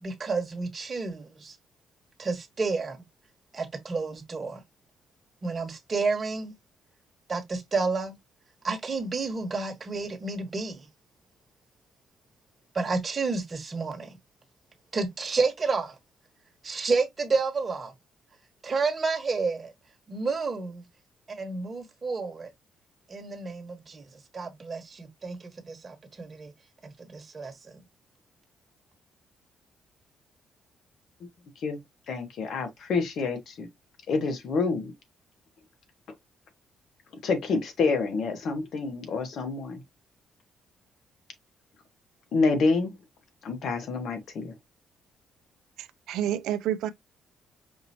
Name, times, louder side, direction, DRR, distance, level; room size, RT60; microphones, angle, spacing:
voice 1, 0.0-1.5 2.2-3.0 3.5-4.6 5.4-6.5 7.3-8.1 8.6-10.8 12.7-14.1 14.9-15.9 16.6-17.9 18.6-19.7 20.1-20.8 21.3-22.5 23.1-24.0 24.3-26.5 26.8-27.8, right 4 dB, 35° right, 1.3 m, -30 dB
voice 2, 32.1-33.7 34.1-34.9 37.2-39.8 42.3-42.9 43.4-44.5, left 4 dB, 65° left, 1.3 m, -27 dB
voice 3, 45.8-46.9, right 11 dB, 85° right, 0.4 m, -29 dB
5.2 x 2.7 x 2.8 m
cardioid pair, 90°, 0 cm